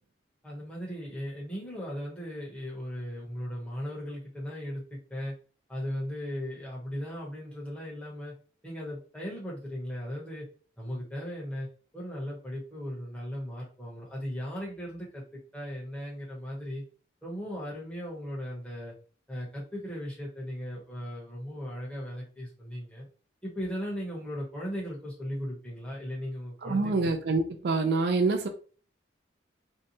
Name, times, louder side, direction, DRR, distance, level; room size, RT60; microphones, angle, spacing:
voice 1, 0.4-5.3 5.7-8.3 8.6-10.5 10.8-11.7 11.9-16.8 17.2-18.9 19.3-23.1 23.4-26.9, equal, 5° left, -5 dB, 0.9 m, -37 dB
voice 2, 26.6-28.5, right 3 dB, 60° right, 6 dB, 0.3 m, -26 dB
2.6 x 2.2 x 2.8 m, 0.39 s
head